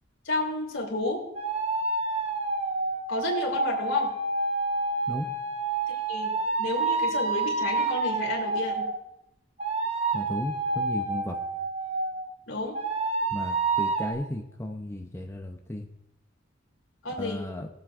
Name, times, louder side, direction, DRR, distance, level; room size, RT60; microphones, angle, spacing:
voice 1, 0.2-1.2 3.1-4.1 5.9-6.3 6.6-8.9 12.5-12.7 17.0-17.4, left 2 dB, 80° left, -1 dB, 3.0 m, -30 dB
sound 1, 1.3-9.0 9.6-12.3 12.7-14.1, right 3 dB, 35° right, 1.1 m, -29 dB
voice 2, 10.1-11.4 13.3-15.9 17.2-17.7, left 1 dB, 15° left, 2 dB, 0.7 m, -35 dB
21.0 x 7.5 x 2.5 m, 0.81 s
head